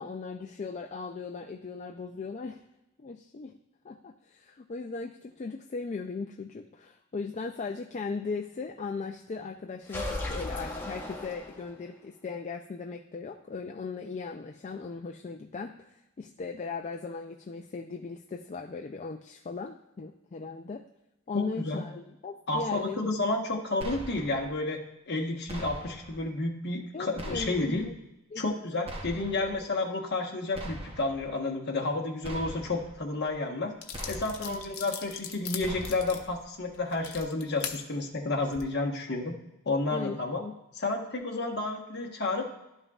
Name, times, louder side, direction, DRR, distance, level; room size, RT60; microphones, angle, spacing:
voice 1, 0.0-2.6 3.0-3.5 3.8-20.8 21.3-23.0 26.9-27.9 28.3-28.4 34.4-34.6 39.9-40.5, left 4 dB, 35° left, 3 dB, 0.4 m, -38 dB
sound 1, 9.9-11.9, left 1 dB, 10° left, 0.9 m, -36 dB
voice 2, 21.3-21.8 22.5-27.9 28.4-33.7 34.1-39.3 39.6-40.4 40.8-42.5, left 2 dB, 50° left, 2 dB, 1.2 m, -31 dB
sound 2, 23.8-24.5 25.5-26.2 27.2-27.9 28.9-29.6 30.5-31.2 32.2-32.9 33.9-34.6 35.6-36.3, equal, 25° right, 0.9 m, -41 dB
sound 3, 33.3-33.4 33.8-37.8 38.4-38.6, left 8 dB, 85° left, 0.9 m, -40 dB
12.0 x 5.5 x 2.4 m, 0.93 s
head